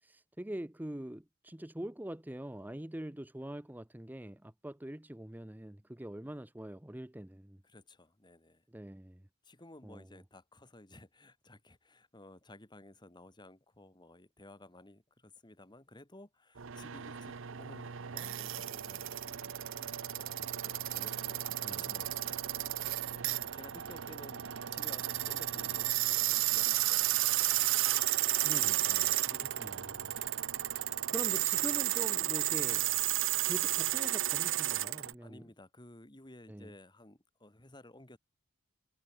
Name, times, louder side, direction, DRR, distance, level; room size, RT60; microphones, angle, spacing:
voice 1, 0.0-7.6 8.7-9.3 9.8-10.2 21.6-21.9 28.4-30.1 31.1-32.9 33.5-35.5 36.5-36.7, right 1 dB, 10° right, 0.7 m, -44 dB
voice 2, 7.6-8.6 9.4-27.2 27.5-27.6 35.2-38.2, left 1 dB, 20° left, 2.2 m, -55 dB
sound 1, 16.6-35.1, right 15 dB, 65° right, 0.7 m, -33 dB
head